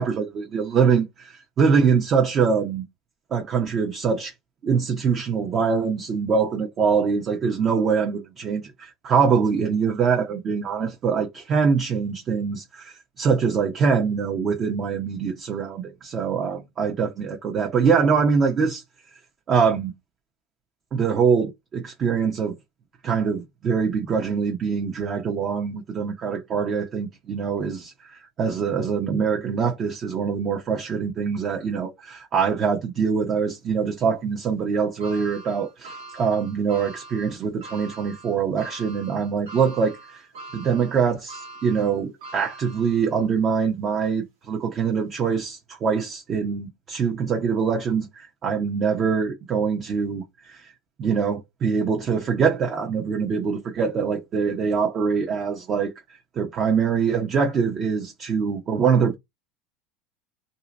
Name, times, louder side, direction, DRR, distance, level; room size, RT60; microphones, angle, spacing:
voice 1, 0.0-2.8 3.3-4.3 4.6-18.8 19.5-19.9 20.9-22.5 23.0-40.2 40.5-50.7 51.0-55.9 56.4-59.1, right 6 dB, 40° right, 0.7 m, -24 dB
sound 1, 35.0-43.4 43.9-44.0 45.1-45.2, right 2 dB, 85° right, 1.6 m, -43 dB
2.7 x 2.5 x 4.0 m
hypercardioid pair, 95°, 0 cm